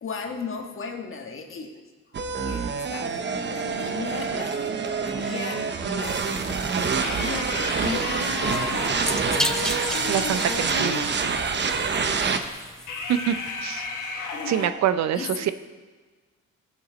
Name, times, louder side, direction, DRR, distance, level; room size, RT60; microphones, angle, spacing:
voice 1, 0.0-1.8 2.4-8.2 11.9-12.4 14.0-14.1 15.1-15.5, left 5 dB, 45° left, 3 dB, 1.5 m, -36 dB
sound 1, 2.1-12.4, right 5 dB, 35° right, 0.8 m, -27 dB
sound 2, 6.0-14.1, equal, ahead, 0.6 m, -36 dB
sound 3, 7.0-11.2 12.9-14.7, left 3 dB, 80° left, 1.3 m, -32 dB
voice 2, 10.1-11.1 13.1-13.4 13.6-13.9 14.4-15.5, right 10 dB, 65° right, 12 dB, 0.5 m, -25 dB
14.5 x 7.2 x 4.0 m, 1.4 s
cardioid pair, 90°, 30 cm